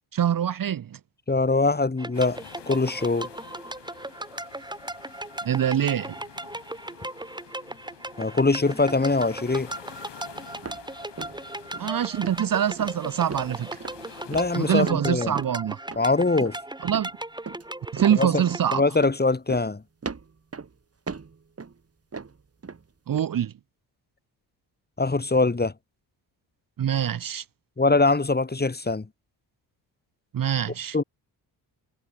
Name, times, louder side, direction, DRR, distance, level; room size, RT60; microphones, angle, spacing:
voice 1, 0.1-1.0 5.4-6.2 11.8-13.7 14.6-15.8 16.8-17.1 17.9-18.8 23.1-23.5 26.8-27.4 30.3-31.0, right 9 dB, 50° right, 1.0 m, -24 dB
voice 2, 1.3-3.3 8.2-9.7 14.3-15.3 16.0-16.6 18.2-18.4 18.7-19.8 25.0-25.7 27.8-29.1 30.9-31.0, left 3 dB, 20° left, 2.7 m, -23 dB
sound 1, 2.0-18.8, right 1 dB, 10° right, 3.1 m, -37 dB
sound 2, 2.1-14.9, left 9 dB, 70° left, 7.5 m, -49 dB
sound 3, 10.6-10.9 11.2-11.5 11.7-11.9 12.2-12.4 12.8-13.0 13.3-13.5 13.8-14.0 14.3-15.0 15.4-15.6 15.9-16.0 16.4-16.6 16.9-17.1 17.5-17.6 18.0-18.2 18.5-18.6 19.0-19.2 19.5-19.7 20.0-20.7 21.1-21.8 22.1-22.8 23.1-23.2, right 5 dB, 35° right, 2.6 m, -38 dB
supercardioid pair, 60°, 43 cm